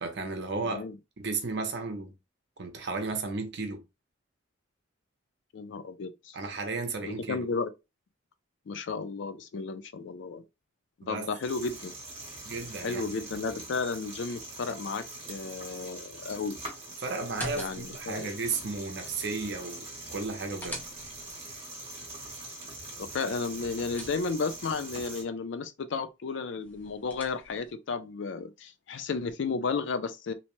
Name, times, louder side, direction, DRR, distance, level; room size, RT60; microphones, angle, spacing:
voice 1, 0.0-0.8 1.2-2.1 2.6-3.8 6.3-7.5 11.0-11.3 12.4-13.1 17.0-20.8, right 3 dB, 60° right, 0.7 m, -34 dB
voice 2, 0.6-1.0 5.5-6.4 7.0-7.7 8.7-10.4 11.1-11.9 12.8-16.6 17.5-18.3 23.1-30.3, left 4 dB, 60° left, 0.4 m, -33 dB
sound 1, 11.4-25.2, right 2 dB, 30° right, 1.1 m, -43 dB
sound 2, 17.2-18.1 20.1-21.4 23.4-24.6 26.6-27.7, left 1 dB, 10° left, 0.6 m, -44 dB
2.8 x 2.1 x 3.0 m
head